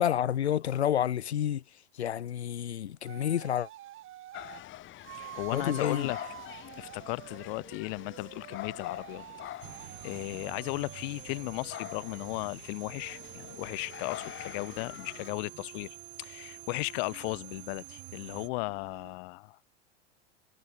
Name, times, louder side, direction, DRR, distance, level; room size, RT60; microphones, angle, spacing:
voice 1, 0.0-1.6 1.9-3.7 5.5-6.1, left 10 dB, 90° left, 1.1 m, -29 dB
sound 1, 3.0-4.6 5.0-12.4 12.8-19.2, right 13 dB, 40° right, 1.7 m, -50 dB
sound 2, 4.3-15.3, left 14 dB, 40° left, 1.2 m, -45 dB
voice 2, 5.3-6.2 6.8-9.2 10.0-19.7, left 32 dB, 55° left, 0.8 m, -36 dB
sound 3, 9.6-18.5, right 39 dB, 60° right, 2.0 m, -48 dB
hypercardioid pair, 90°, 32 cm